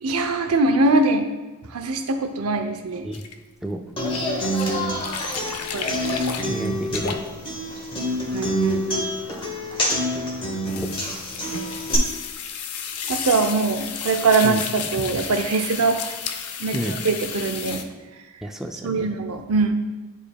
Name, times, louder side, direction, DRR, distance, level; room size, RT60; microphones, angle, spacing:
voice 1, 0.0-1.3 1.7-3.1 4.7-4.8 5.7-5.9 8.3-9.1 13.1-16.0 16.6-17.8 18.8-19.7, right 3 dB, 75° right, 6 dB, 0.7 m, -22 dB
sound 1, 3.1-3.3 4.0-4.2 4.6-7.5 8.0-9.9 10.7-17.8, left 7 dB, 90° left, 0.6 m, -33 dB
Human voice / Acoustic guitar, 4.0-11.9, equal, 25° left, 1.1 m, -27 dB
voice 2, 6.5-7.3 10.8-10.9 14.4-14.6 16.7-17.0 18.4-19.1, right 1 dB, ahead, 2 dB, 0.3 m, -30 dB
10.5 x 4.9 x 2.3 m, 1.2 s
head